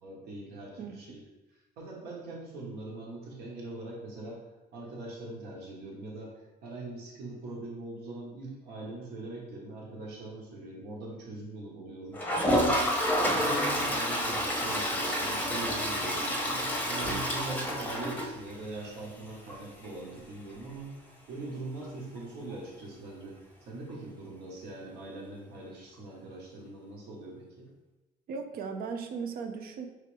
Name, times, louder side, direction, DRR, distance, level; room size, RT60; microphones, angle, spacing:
voice 1, 0.0-1.2 1.5-4.4 4.7-12.2 12.5-12.8 13.3-20.9 21.3-27.7, right 2 dB, 80° right, -3 dB, 1.4 m, -42 dB
voice 2, 0.8-1.2 28.3-29.9, right 5 dB, 60° right, 6 dB, 0.6 m, -37 dB
Toilet flush, 12.1-18.9 19.2-19.3 19.5-19.6 19.8-19.9 22.5-22.6 23.9-24.0, equal, 10° left, 0.7 m, -29 dB
4.7 x 3.3 x 3.3 m, 1.1 s
cardioid pair, 110°, 17 cm